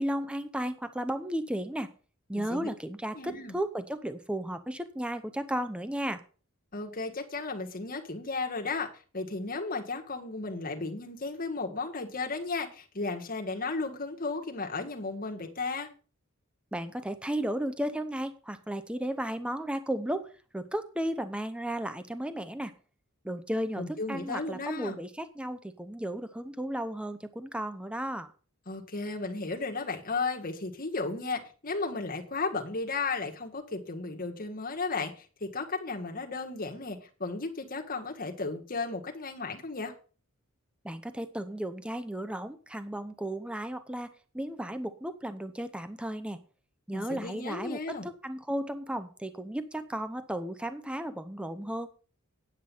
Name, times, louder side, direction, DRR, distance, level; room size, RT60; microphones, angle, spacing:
voice 1, 0.0-1.9 2.3-6.2 16.7-20.3 20.5-22.7 23.2-28.3 40.8-44.1 44.3-46.4 46.9-51.9, right 1 dB, 5° right, 0.6 m, -34 dB
voice 2, 2.4-2.7 3.1-3.5 6.7-8.9 9.1-15.9 23.8-25.0 28.7-39.9 46.9-48.1, left 3 dB, 40° left, 1.7 m, -34 dB
9.6 x 7.8 x 5.5 m
head